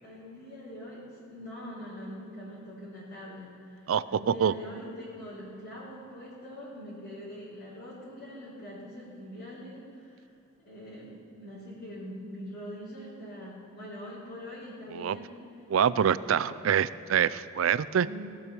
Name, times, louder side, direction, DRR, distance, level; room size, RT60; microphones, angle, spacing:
voice 1, 0.0-10.2 10.6-15.3 16.2-16.8 18.0-18.3, equal, 50° left, -11 dB, 3.7 m, -43 dB
voice 2, 3.9-4.5 14.9-15.2 15.7-18.1, right 8 dB, 85° right, 16 dB, 0.4 m, -25 dB
18.0 x 6.2 x 6.8 m, 2.8 s
head